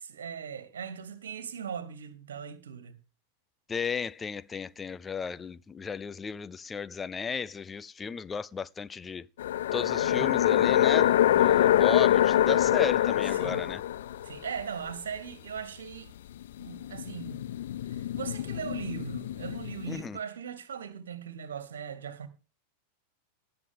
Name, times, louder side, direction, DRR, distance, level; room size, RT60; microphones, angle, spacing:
voice 1, 0.0-3.0 10.0-10.5 13.3-13.6 14.2-16.1 16.6-17.4 17.9-22.3, right 7 dB, 65° right, 2.2 m, -39 dB
voice 2, 3.7-9.3 9.7-13.8 19.9-20.2, left 6 dB, 15° left, 0.5 m, -34 dB
sound 1, 9.4-14.5 16.6-20.0, left 12 dB, 60° left, 0.5 m, -25 dB
18.5 x 6.9 x 3.6 m
figure-of-eight pair, 90°, 0 cm